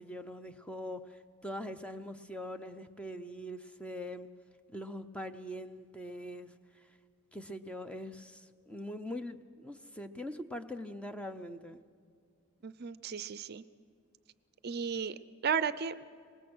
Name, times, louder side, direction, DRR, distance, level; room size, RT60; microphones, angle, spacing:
voice 1, 0.0-4.3 4.7-6.8 7.3-11.8, equal, 5° left, 9 dB, 0.6 m, -42 dB
voice 2, 12.6-13.6 14.6-15.2 15.4-15.9, right 6 dB, 45° right, 15 dB, 0.5 m, -34 dB
24.5 x 20.0 x 6.2 m, 2.2 s
head